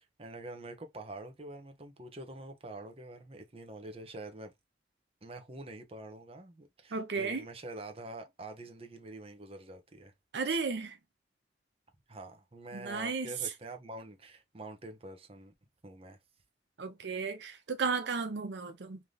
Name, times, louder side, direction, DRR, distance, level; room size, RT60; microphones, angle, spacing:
voice 1, 0.2-4.5 5.2-10.1 10.5-10.6 12.1-15.5 15.8-16.2, right 2 dB, 35° right, 0.8 m, -46 dB
voice 2, 6.9-7.4 10.3-11.0 12.7-13.3 16.8-19.0, right 4 dB, 80° right, 0.6 m, -34 dB
3.3 x 2.8 x 3.8 m
head